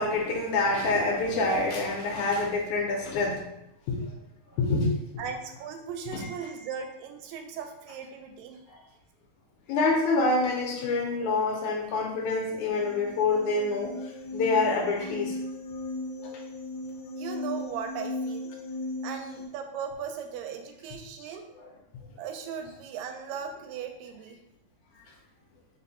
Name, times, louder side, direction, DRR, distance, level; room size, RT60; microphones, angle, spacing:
voice 1, 0.0-3.4 3.9-4.0 4.6-4.9 6.1-6.3 9.7-13.9 14.3-15.3, left 3 dB, 75° left, 0 dB, 1.8 m, -26 dB
voice 2, 5.2-8.6 17.2-18.5 19.0-21.5 22.2-24.4, right 7 dB, 85° right, 4 dB, 2.2 m, -38 dB
sound 1, 12.7-19.5, left 2 dB, 90° left, 2.3 m, -37 dB
5.2 x 2.1 x 4.1 m, 0.82 s
omnidirectional pair, 3.9 m